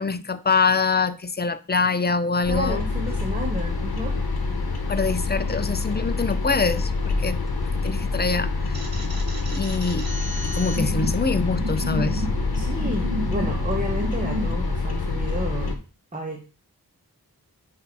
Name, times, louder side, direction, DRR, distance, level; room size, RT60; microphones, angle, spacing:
voice 1, 0.0-2.8 4.9-7.4 7.8-8.8 9.5-10.1 10.4-12.2, left 4 dB, 25° left, 0.5 m, -24 dB
sound 1, 2.4-15.7, left 3 dB, 75° left, 1.0 m, -26 dB
voice 2, 2.5-4.1 12.5-15.8 16.1-16.4, right 1 dB, 20° right, 1.1 m, -31 dB
sound 2, 8.7-14.5, equal, 70° right, 1.2 m, -32 dB
8.2 x 2.7 x 4.6 m
wide cardioid pair, 60°, 38 cm